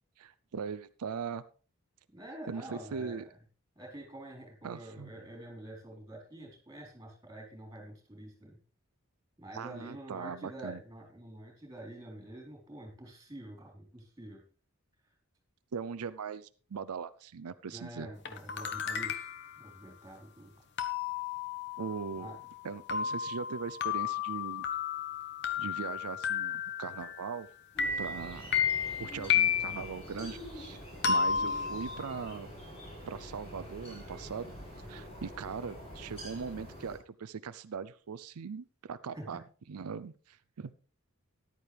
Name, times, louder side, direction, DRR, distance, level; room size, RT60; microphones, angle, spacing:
voice 1, 0.2-1.4 2.5-3.3 4.6-5.1 9.5-10.8 15.7-18.1 21.8-22.4 22.6-24.6 25.6-27.5 28.0-28.5 29.0-30.8 31.1-32.5 33.1-34.5 34.9-39.4 39.7-40.7, right 6 dB, 85° right, 14 dB, 0.5 m, -40 dB
voice 2, 2.1-3.3 3.8-8.6 9.4-14.4 17.7-19.3 19.6-20.5 22.2-22.4 39.1-39.5, right 1 dB, 15° right, 1 dB, 4.2 m, -47 dB
sound 1, 18.2-19.6 20.8-27.4 27.8-30.0 31.0-32.3, left 7 dB, 50° left, 1.1 m, -33 dB
sound 2, 27.7-37.0, equal, 25° left, 5.6 m, -46 dB
14.0 x 10.5 x 3.4 m, 0.39 s
head